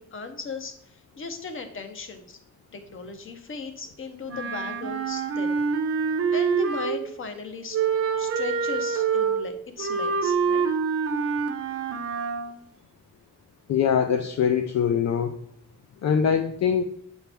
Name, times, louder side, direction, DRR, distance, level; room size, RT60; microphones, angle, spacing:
voice 1, 0.0-2.4 2.7-5.6 6.3-7.8 8.2-10.7, left 4 dB, 45° left, 7 dB, 0.9 m, -37 dB
Wind instrument woodwind instrument, 4.3-7.2 7.7-12.6, right 6 dB, 50° right, 0.6 m, -26 dB
voice 2, 13.7-15.3 16.0-16.8, left 7 dB, 65° left, 6 dB, 0.5 m, -23 dB
7.9 x 4.4 x 3.4 m, 0.68 s
wide cardioid pair, 165°, 29 cm